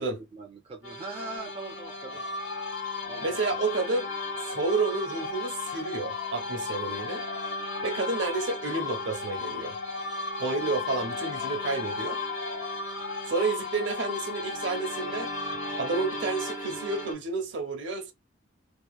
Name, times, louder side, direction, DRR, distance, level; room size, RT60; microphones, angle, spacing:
voice 1, 0.0-2.2 3.0-3.4, right 2 dB, 30° right, 0.4 m, -41 dB
sound 1, 0.8-17.1, equal, 85° left, 1.2 m, -38 dB
sound 2, 1.4-16.6, left 6 dB, 65° left, 0.4 m, -37 dB
voice 2, 3.2-4.1 4.4-7.3 7.8-9.8 10.4-12.2 13.3-15.3 15.8-18.1, right 3 dB, 65° right, 0.7 m, -30 dB
2.8 x 2.0 x 2.2 m
head